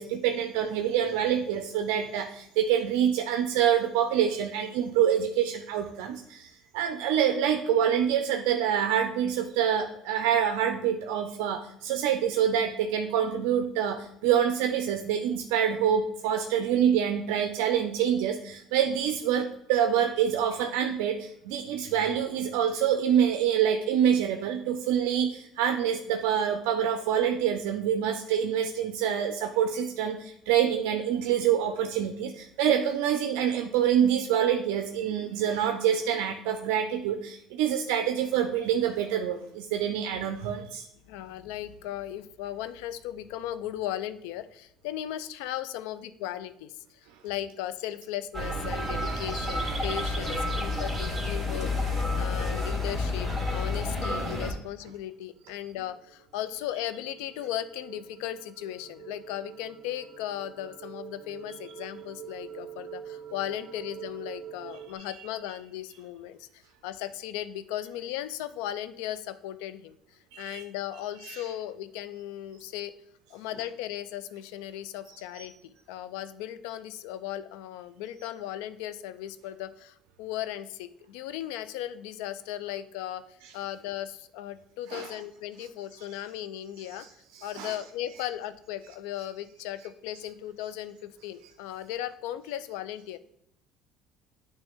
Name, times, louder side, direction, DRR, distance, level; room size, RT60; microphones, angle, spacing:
voice 1, 0.0-40.8 70.3-70.6 71.2-71.4 75.3-75.5 84.9-85.1 87.6-87.7, right 9 dB, 85° right, 5 dB, 0.5 m, -26 dB
voice 2, 41.1-72.9 73.3-87.1 87.4-93.2, left 12 dB, 85° left, 13 dB, 0.4 m, -37 dB
sound 1, 48.3-54.5, left 2 dB, 5° right, 2.5 m, -30 dB
sound 2, 55.3-64.9, right 9 dB, 40° right, 0.7 m, -45 dB
8.8 x 3.2 x 3.6 m, 0.73 s
supercardioid pair, 100°, 0 cm